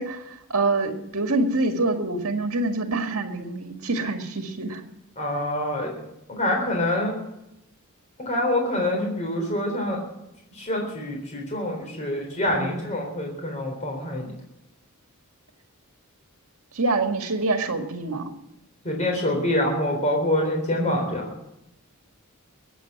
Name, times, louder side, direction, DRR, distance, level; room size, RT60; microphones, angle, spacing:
voice 1, 0.0-4.8 12.5-12.7 16.7-18.3, right 2 dB, 70° right, 5 dB, 2.0 m, -26 dB
voice 2, 5.2-5.9 6.3-7.1 8.3-10.0 10.5-14.3 18.8-21.2, left 1 dB, 35° left, 1 dB, 3.8 m, -26 dB
22.0 x 9.1 x 6.0 m, 0.87 s
head